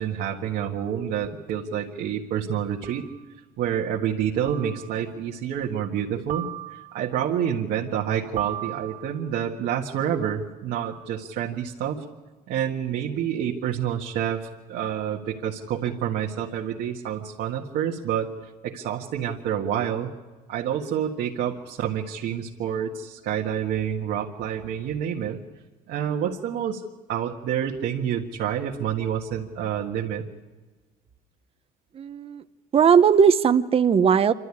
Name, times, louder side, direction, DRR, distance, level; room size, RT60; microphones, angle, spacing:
voice 1, 0.0-3.1 3.6-12.0 12.5-18.3 18.6-20.1 20.5-25.4 25.9-30.2, right 9 dB, 75° right, -2 dB, 1.7 m, -28 dB
sound 1, 1.2-1.3 2.8-3.2 4.5-5.0 6.3-7.1 8.4-9.3, right 13 dB, 60° right, 2.3 m, -35 dB
voice 2, 31.9-32.4 32.7-34.3, right 7 dB, 35° right, 10 dB, 0.8 m, -18 dB
26.0 x 12.5 x 9.8 m, 1.3 s
cardioid pair, 110°, 17 cm